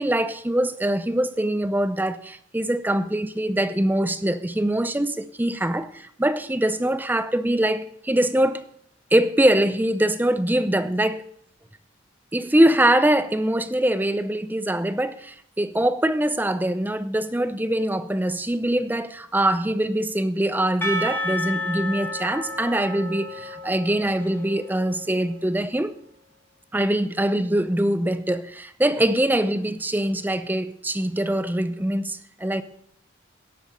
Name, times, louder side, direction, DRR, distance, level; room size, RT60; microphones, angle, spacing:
voice 1, 0.0-8.6 9.1-11.3 12.3-25.9 26.7-32.6, right 1 dB, 10° right, 0.5 m, -23 dB
Percussion / Church bell, 20.8-25.6, left 1 dB, 10° left, 1.4 m, -32 dB
18.0 x 7.8 x 6.7 m
head